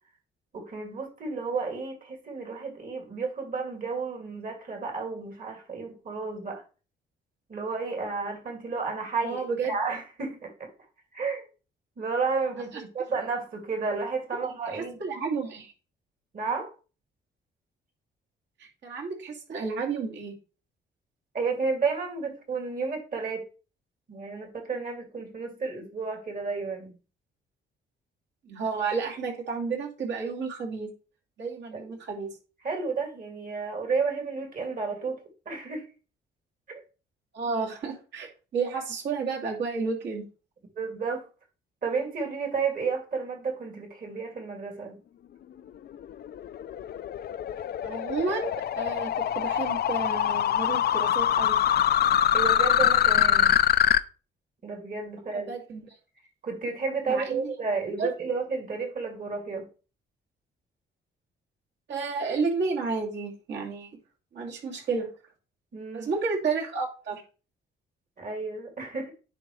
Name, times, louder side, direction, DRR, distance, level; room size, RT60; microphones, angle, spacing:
voice 1, 0.5-6.6 7.5-10.7 11.1-11.5 12.0-15.0 16.3-16.7 21.3-23.4 24.1-27.0 31.7-31.8 32.6-35.2 35.5-35.8 36.7-36.8 40.8-41.2 41.8-45.0 52.3-53.6 54.6-55.5 56.4-59.7 65.7-66.1 68.2-69.1, right 4 dB, 45° right, 2.4 m, -32 dB
voice 2, 9.2-9.7 14.3-14.5 14.7-15.7 18.6-20.3 28.4-30.9 31.4-32.3 37.3-40.2 47.8-51.6 55.3-55.8 57.1-57.5 58.0-58.1 61.9-63.9 64.3-65.1 65.9-67.2, right 4 dB, 65° right, 2.6 m, -31 dB
sound 1, 45.9-54.0, left 10 dB, 55° left, 0.5 m, -24 dB
9.8 x 4.0 x 3.2 m
cardioid pair, 90°, 20 cm